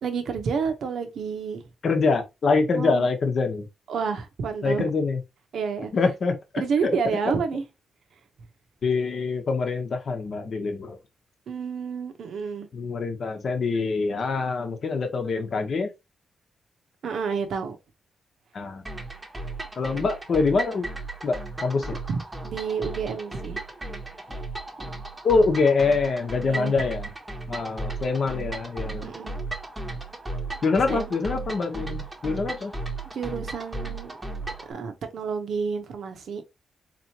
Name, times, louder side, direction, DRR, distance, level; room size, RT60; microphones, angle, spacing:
voice 1, 0.0-1.6 2.7-3.1 3.9-4.9 5.5-5.9 6.6-7.6 11.5-12.7 17.0-17.8 22.1-23.6 24.8-24.9 26.5-26.7 29.0-29.4 30.9-31.2 33.1-34.2 34.7-36.5, right 5 dB, 65° right, 0.9 m, -29 dB
voice 2, 1.8-3.7 4.6-5.2 5.9-6.3 6.8-7.2 8.8-11.0 12.7-15.9 18.5-18.9 19.8-20.9 21.2-22.0 25.2-27.1 27.5-29.1 30.6-32.7, left 4 dB, 45° left, 0.9 m, -25 dB
sound 1, 18.9-34.7, right 2 dB, 15° right, 0.9 m, -35 dB
4.1 x 3.0 x 2.9 m
wide cardioid pair, 145°, 0 cm